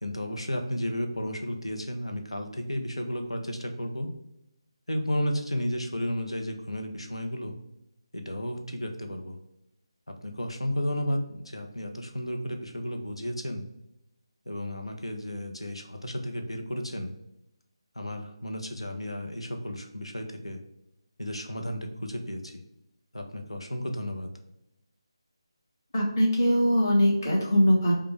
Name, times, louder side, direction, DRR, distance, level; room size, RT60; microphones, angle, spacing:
voice 1, 0.0-4.1 4.9-7.6 8.1-9.4 10.1-13.6 14.5-17.1 17.9-20.6 21.2-22.5 23.1-24.3, equal, 85° left, 4 dB, 0.8 m, -33 dB
voice 2, 25.9-27.9, equal, 40° left, -3 dB, 1.4 m, -22 dB
5.0 x 2.3 x 3.2 m, 0.86 s
figure-of-eight pair, 155°, 3 cm